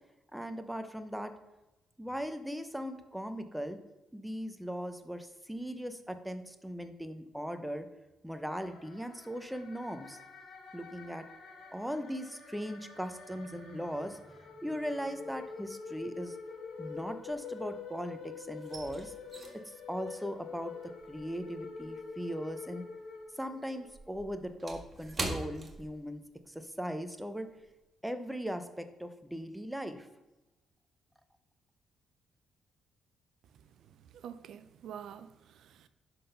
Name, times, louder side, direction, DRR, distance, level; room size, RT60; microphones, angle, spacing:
voice 1, 0.3-1.3 2.0-3.8 4.1-7.9 8.2-10.2 10.7-11.2 11.7-14.2 14.6-16.4 16.8-19.1 19.7-20.7 21.1-22.9 23.4-27.5 28.0-30.1, equal, 5° right, 0.8 m, -39 dB
sound 1, 8.6-23.9, left 5 dB, 70° left, 1.7 m, -46 dB
sound 2, 15.5-15.7 16.0-18.0 18.2-22.9 23.2-26.5 26.8-27.0 27.5-27.7, right 2 dB, 35° right, 1.6 m, -43 dB
voice 2, 34.1-35.9, right 8 dB, 75° right, 0.5 m, -47 dB
10.5 x 3.9 x 5.7 m
cardioid pair, 90°, 0 cm